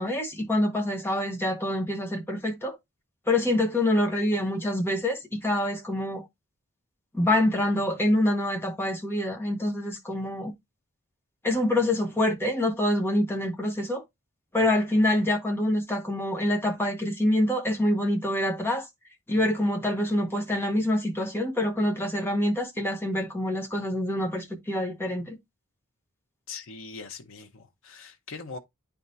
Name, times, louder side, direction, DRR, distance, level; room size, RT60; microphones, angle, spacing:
voice 1, 0.0-2.8 3.3-6.2 7.1-10.5 11.4-14.0 14.5-18.8 19.3-25.4, left 1 dB, 10° left, 1.1 m, -26 dB
voice 2, 26.5-28.6, left 4 dB, 65° left, 0.8 m, -41 dB
10.0 x 3.5 x 2.7 m
head